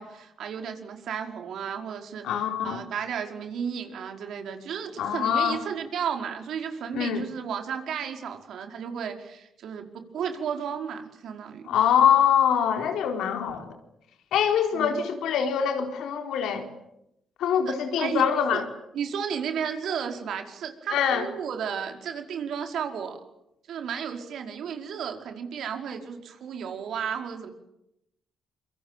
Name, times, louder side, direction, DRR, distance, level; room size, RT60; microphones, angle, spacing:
voice 1, 0.0-2.2 2.6-11.7 14.7-15.1 17.7-18.2 18.5-18.6 18.9-23.2 23.7-27.5, right 7 dB, 70° right, 4 dB, 5.2 m, -33 dB
voice 2, 2.2-2.8 5.0-5.6 6.9-7.2 11.7-13.7 14.3-16.7 17.4-18.6 20.9-21.3, left 8 dB, 80° left, 5 dB, 4.4 m, -24 dB
26.5 x 24.5 x 9.2 m, 0.84 s
cardioid pair, 90°, 0 cm